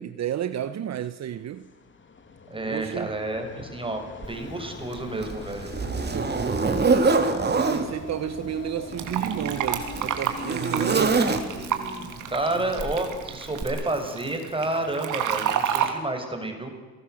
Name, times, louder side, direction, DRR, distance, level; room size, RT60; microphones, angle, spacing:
voice 1, 0.0-1.7 2.6-3.2 6.1-6.3 7.5-11.2 12.5-12.7 15.7-15.9, right 10 dB, 60° right, 1.2 m, -32 dB
sound 1, 1.3-13.9, left 4 dB, 40° left, 3.0 m, -43 dB
voice 2, 2.5-4.0 4.3-5.7 11.2-16.7, right 2 dB, 15° right, 5.9 m, -30 dB
Zipper (clothing), 4.2-4.3 4.9-7.9 8.8-11.8 12.8-13.0 13.6-13.7, right 4 dB, 35° right, 3.5 m, -25 dB
Fill (with liquid), 9.0-15.9, right 9 dB, 85° right, 3.2 m, -30 dB
29.5 x 19.0 x 7.9 m
cardioid pair, 90°, 30 cm